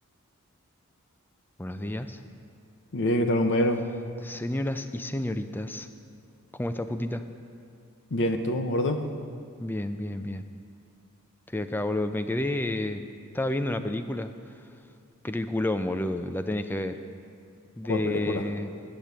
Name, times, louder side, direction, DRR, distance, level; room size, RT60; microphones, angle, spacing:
voice 1, 1.6-2.2 4.2-5.9 6.5-7.2 9.6-10.4 11.5-13.1 13.3-14.3 15.2-17.0 17.8-18.7, left 1 dB, 10° left, 9 dB, 0.4 m, -30 dB
voice 2, 2.9-3.8 8.1-9.0 17.9-18.4, left 1 dB, 55° left, 7 dB, 0.7 m, -25 dB
8.7 x 7.5 x 8.1 m, 2.3 s
head